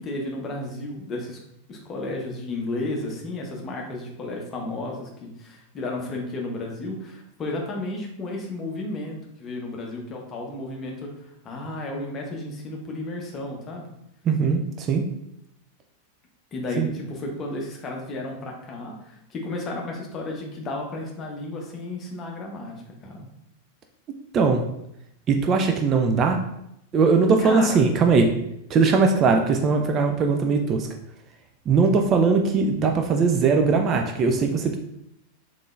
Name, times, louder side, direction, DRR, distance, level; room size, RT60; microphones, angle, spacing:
voice 1, 0.0-1.4 1.7-13.9 16.5-23.3 27.4-27.8, left 2 dB, 25° left, 0 dB, 0.8 m, -33 dB
voice 2, 14.3-15.0 16.8-16.9 24.3-24.6 25.3-26.4 26.9-28.3 28.7-30.9 31.7-34.8, right 4 dB, 30° right, 4 dB, 0.3 m, -20 dB
3.6 x 3.1 x 2.4 m, 0.79 s
figure-of-eight pair, 90°, 0 cm